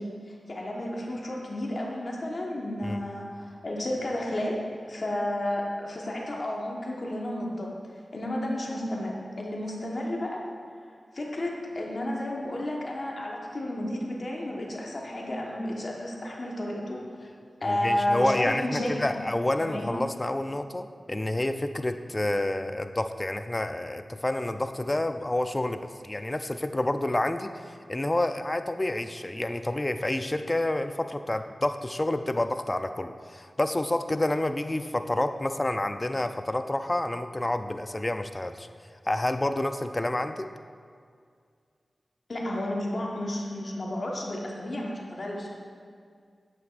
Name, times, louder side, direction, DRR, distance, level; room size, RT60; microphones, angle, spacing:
voice 1, 0.0-7.7 8.1-10.5 11.1-17.3 17.6-19.2 19.6-20.1 42.3-45.5, left 1 dB, 60° left, -2 dB, 1.3 m, -32 dB
voice 2, 17.6-27.5 27.9-38.7 39.1-40.5, left 1 dB, 30° left, 9 dB, 0.4 m, -29 dB
8.8 x 7.6 x 2.6 m, 2.1 s
cardioid pair, 45°, 0 cm